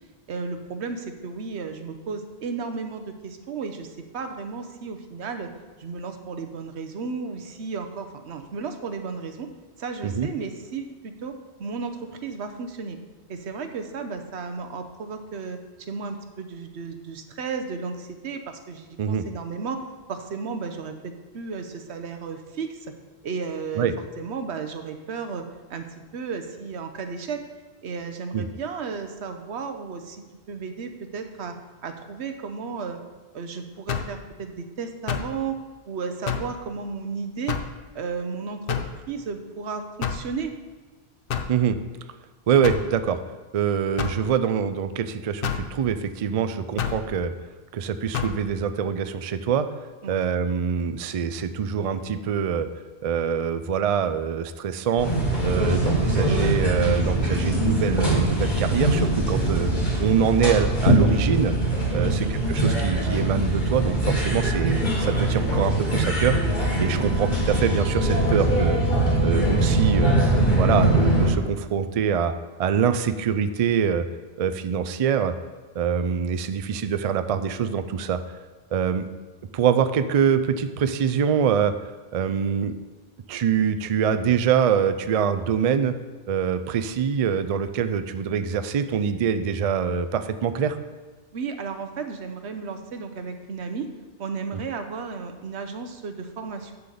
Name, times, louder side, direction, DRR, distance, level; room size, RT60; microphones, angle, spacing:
voice 1, 0.3-5.5 5.8-9.5 9.8-11.3 11.6-13.0 13.3-15.6 15.9-19.8 20.1-22.9 23.2-23.9 24.2-25.9 26.1-27.4 27.8-31.5 31.8-33.0 33.3-37.6 37.9-38.8 39.1-40.5 50.0-50.2 56.1-56.2 61.9-62.2 67.0-67.2 91.3-93.9 94.2-96.7, right 5 dB, 85° right, 7 dB, 1.1 m, -33 dB
sound 1, 33.9-34.2 35.1-35.4 36.3-36.6 37.5-37.8 38.7-39.0 40.0-40.3 41.3-41.6 42.6-42.9 44.0-44.2 45.4-45.7 46.8-47.0 48.1-48.4, left 7 dB, 65° left, 0.8 m, -28 dB
voice 2, 42.5-43.2 43.5-47.3 47.7-49.7 50.1-52.7 53.0-55.1 55.4-59.7 60.0-61.5 61.9-66.4 66.8-68.8 69.2-70.1 70.5-72.3 72.6-74.1 74.4-75.3 75.8-78.2 78.7-79.1 79.5-81.7 82.1-82.7 83.3-86.0 86.3-90.8 94.5-94.6, right 7 dB, 55° right, 10 dB, 0.4 m, -24 dB
sound 2, 55.0-71.3, right 1 dB, 45° left, 2.0 m, -22 dB
9.8 x 3.9 x 6.7 m, 1.3 s
omnidirectional pair, 1.1 m